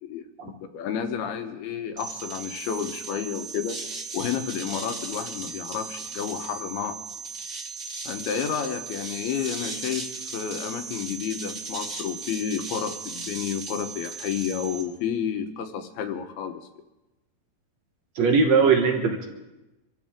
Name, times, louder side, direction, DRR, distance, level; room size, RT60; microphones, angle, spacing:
voice 1, 0.0-3.8 4.1-7.0 8.1-16.6, left 8 dB, 70° left, 6 dB, 2.9 m, -31 dB
sound 1, 2.0-14.8, right 4 dB, 20° right, 2.5 m, -37 dB
voice 2, 18.1-19.3, right 5 dB, 65° right, 3 dB, 1.7 m, -20 dB
26.0 x 14.0 x 3.7 m, 1.0 s
omnidirectional pair, 5.0 m